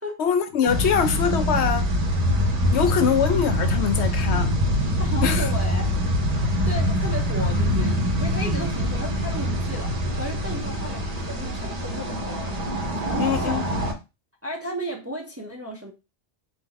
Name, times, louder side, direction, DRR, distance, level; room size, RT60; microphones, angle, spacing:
voice 1, 0.2-1.9 2.7-4.5 5.2-5.5 13.2-13.6, left 7 dB, 75° left, 0.9 m, -23 dB
sound 1, 0.7-13.9, equal, 40° right, 0.9 m, -24 dB
voice 2, 5.0-6.2 6.6-13.6 14.4-15.9, equal, 15° right, 0.5 m, -34 dB
4.0 x 2.6 x 3.8 m
omnidirectional pair, 1.2 m